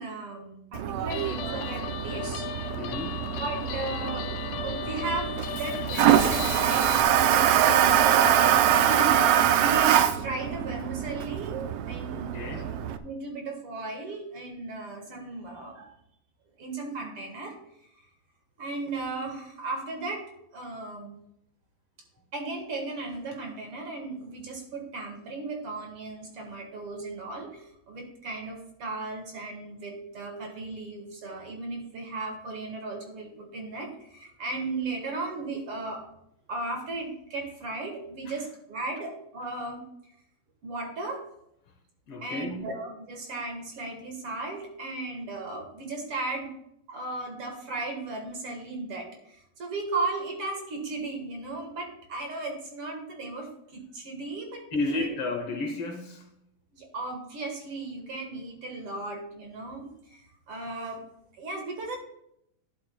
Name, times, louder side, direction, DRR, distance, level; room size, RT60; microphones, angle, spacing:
voice 1, 0.0-2.5 3.4-4.3 4.6-6.9 7.6-8.5 8.8-11.6 11.9-12.6 13.0-15.9 16.6-17.5 18.0-18.1 18.6-20.2 20.5-21.2 22.3-36.0 36.5-39.8 40.6-41.2 42.2-46.5 46.9-55.0 56.7-60.2 60.5-61.0 61.4-62.0, right 3 dB, 55° right, 2.2 m, -36 dB
Toilet flush, 0.7-13.0, right 10 dB, 85° right, 1.4 m, -24 dB
Guitar, 1.1-7.0, left 9 dB, 75° left, 1.5 m, -36 dB
voice 2, 2.8-3.3 12.1-12.8 38.3-38.4 42.1-42.7 54.7-56.3, left 2 dB, 60° left, 1.8 m, -33 dB
12.0 x 11.5 x 2.3 m
omnidirectional pair, 3.3 m